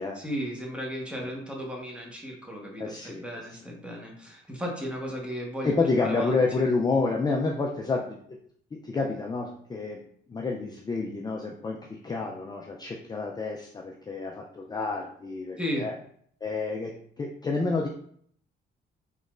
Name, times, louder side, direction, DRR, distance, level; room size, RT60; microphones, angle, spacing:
voice 1, 0.1-6.4 15.6-15.9, equal, 5° right, -1 dB, 1.1 m, -35 dB
voice 2, 2.8-3.2 3.5-3.6 5.6-8.2 8.8-10.0 10.3-15.9 16.4-16.9 17.2-17.9, left 3 dB, 20° left, 0 dB, 0.4 m, -29 dB
4.0 x 3.1 x 2.4 m, 0.63 s
cardioid pair, 90°, 20 cm